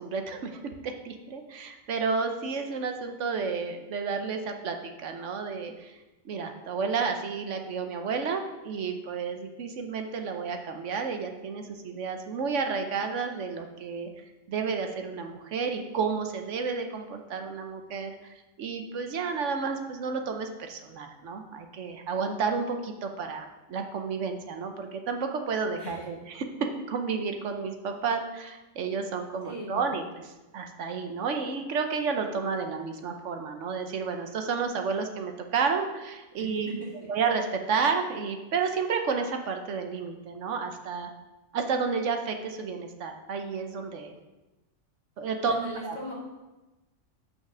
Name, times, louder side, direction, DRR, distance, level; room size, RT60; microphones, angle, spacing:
voice 1, 0.0-6.0 6.2-14.1 14.5-36.7 37.1-41.1 41.5-44.2 45.2-45.6 45.8-46.0, right 5 dB, 65° right, 5 dB, 1.1 m, -31 dB
voice 2, 29.4-29.9 36.4-36.7 45.4-46.1, equal, 35° left, -5 dB, 2.5 m, -39 dB
5.7 x 5.7 x 6.0 m, 1.1 s
omnidirectional pair, 1.4 m